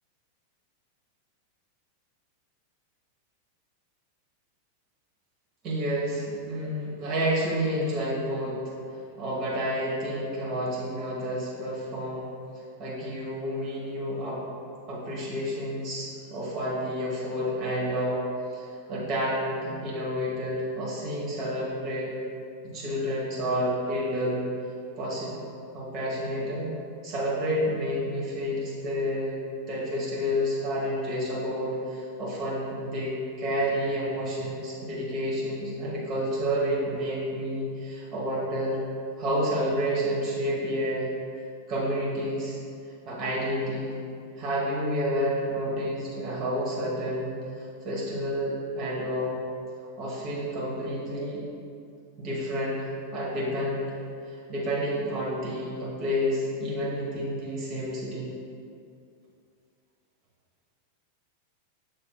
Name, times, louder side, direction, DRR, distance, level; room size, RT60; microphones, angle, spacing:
voice 1, 5.6-12.3 12.8-14.4 14.9-18.2 18.5-22.2 22.6-24.4 25.0-25.3 25.7-26.7 27.0-29.4 29.7-38.8 39.2-41.1 41.7-42.6 43.1-44.0 44.4-47.4 47.8-49.4 50.0-51.4 52.2-53.9 54.3-58.3, equal, 40° right, -7 dB, 1.1 m, -30 dB
7.1 x 3.3 x 2.2 m, 2.4 s
figure-of-eight pair, 90°, 0 cm